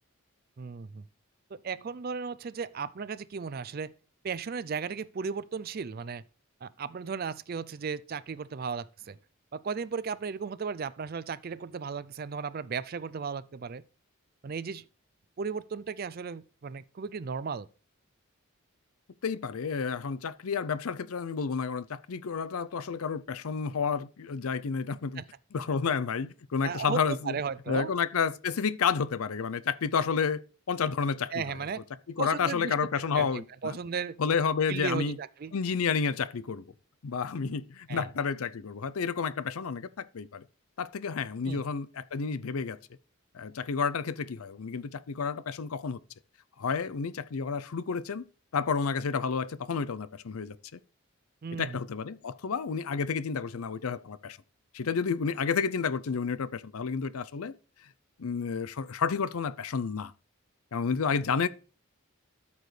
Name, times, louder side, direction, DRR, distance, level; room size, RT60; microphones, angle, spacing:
voice 1, 0.6-1.0 1.5-3.9 4.2-6.2 6.6-9.2 9.5-13.8 14.4-14.8 15.4-17.7 25.2-25.3 26.6-27.9 31.3-31.8 32.2-34.2 34.7-35.5 37.9-38.1 41.4-41.6 51.4-51.8, right 5 dB, 45° right, 0.4 m, -35 dB
voice 2, 19.2-25.2 25.5-27.4 27.7-30.4 30.7-31.7 32.2-33.8 34.2-35.2 35.5-36.6 37.0-40.4 40.8-42.8 43.3-46.0 46.6-48.2 48.5-50.8 51.5-54.4 54.7-57.5 58.2-60.1 60.7-61.5, left 5 dB, 80° left, 0.5 m, -30 dB
13.0 x 7.0 x 3.3 m
head